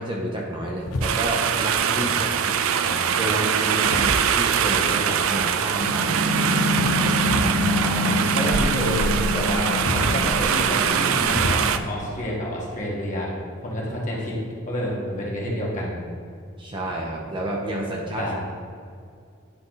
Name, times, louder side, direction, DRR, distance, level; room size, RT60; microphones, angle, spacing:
voice 1, 0.0-2.6 3.2-6.2 6.7-7.1 16.6-18.3, right 1 dB, 25° right, -2 dB, 0.7 m, -30 dB
sound 1, 0.8-1.5 2.5-2.9 3.6-4.8 6.3-7.6 7.9-8.7 9.5-11.5, left 1 dB, 90° left, 0.7 m, -31 dB
sound 2, 1.0-11.8, right 8 dB, 80° right, 0.4 m, -23 dB
voice 2, 1.9-2.3 2.8-3.1 7.3-13.3 13.6-14.3 14.6-16.0 18.2-18.4, equal, 35° left, -4 dB, 1.5 m, -29 dB
sound 3, 5.8-11.4, left 2 dB, 45° right, 1.3 m, -27 dB
9.8 x 3.7 x 3.9 m, 2.3 s
head